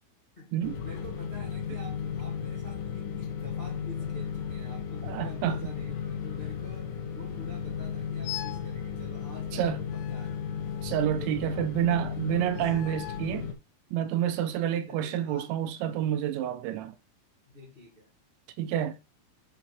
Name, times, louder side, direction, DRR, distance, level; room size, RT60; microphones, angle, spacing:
voice 1, 0.3-10.4 11.1-11.7 12.0-12.5 14.9-15.6 17.4-18.1, equal, 30° left, 0.9 m, -48 dB
sound 1, 0.6-13.5, left 7 dB, 70° left, 3.4 m, -35 dB
voice 2, 5.0-5.6 9.5-9.8 10.8-13.5 13.9-17.0 18.6-19.0, right 11 dB, 85° right, 2.9 m, -29 dB
sound 2, 8.2-8.7 9.9-11.1 12.5-13.4, left 15 dB, 85° left, 3.0 m, -42 dB
11.0 x 3.9 x 4.5 m
omnidirectional pair, 5.5 m